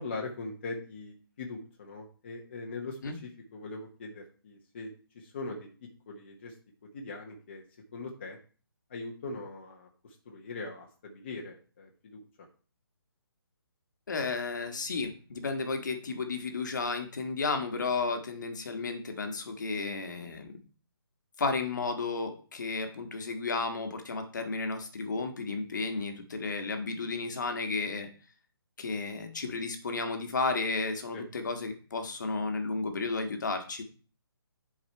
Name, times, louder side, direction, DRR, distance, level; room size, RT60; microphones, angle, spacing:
voice 1, 0.0-5.7 6.1-6.5 6.9-7.6 7.9-8.4 8.9-12.2 31.1-31.2, left 3 dB, 30° left, -1 dB, 1.1 m, -41 dB
voice 2, 14.1-20.5 21.4-28.1 28.8-33.8, left 4 dB, 50° left, 6 dB, 1.5 m, -33 dB
10.5 x 4.8 x 4.6 m, 0.39 s
hypercardioid pair, 175°, 13 cm